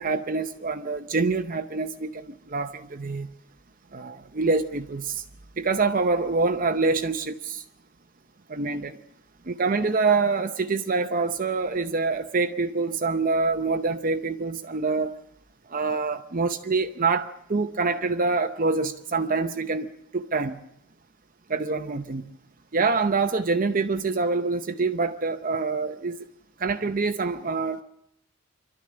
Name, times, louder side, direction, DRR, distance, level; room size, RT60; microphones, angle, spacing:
voice 1, 0.0-3.3 3.9-5.2 5.6-7.6 8.5-9.0 9.4-15.1 15.7-19.9 20.1-20.6 21.5-22.3 22.7-26.2 26.6-27.8, right 4 dB, 40° right, 0.7 m, -26 dB
26.0 x 12.5 x 8.7 m
head